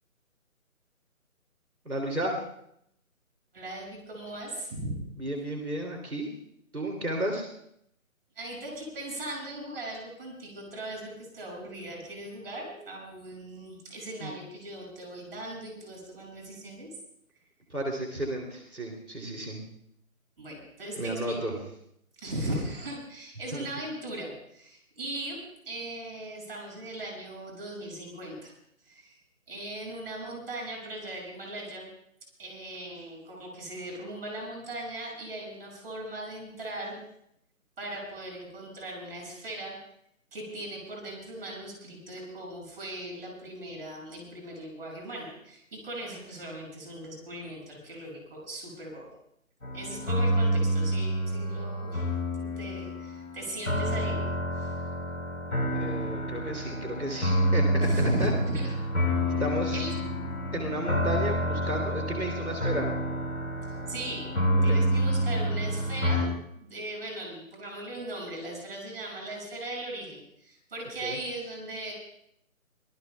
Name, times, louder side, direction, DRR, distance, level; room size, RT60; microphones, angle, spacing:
voice 1, 1.8-2.4 5.2-6.3 6.7-7.5 14.2-14.3 17.7-19.6 21.0-21.5 23.5-23.7 55.7-58.3 59.4-59.8 60.5-63.0 64.7-64.8 71.0-71.2, right 1 dB, 85° right, 1 dB, 2.9 m, -33 dB
voice 2, 3.5-5.0 8.3-16.9 20.4-21.4 22.2-28.5 28.9-29.2 29.5-31.9 32.4-37.0 37.8-39.8 40.3-49.1 49.7-52.1 52.4-54.2 54.6-54.7 57.8-58.7 59.7-59.9 63.9-64.3 64.6-71.9, right 1 dB, 40° right, -1 dB, 6.6 m, -38 dB
sound 1, 49.6-66.3, equal, 80° left, 4.1 m, -28 dB
24.5 x 19.0 x 2.3 m, 0.75 s
figure-of-eight pair, 150°, 42 cm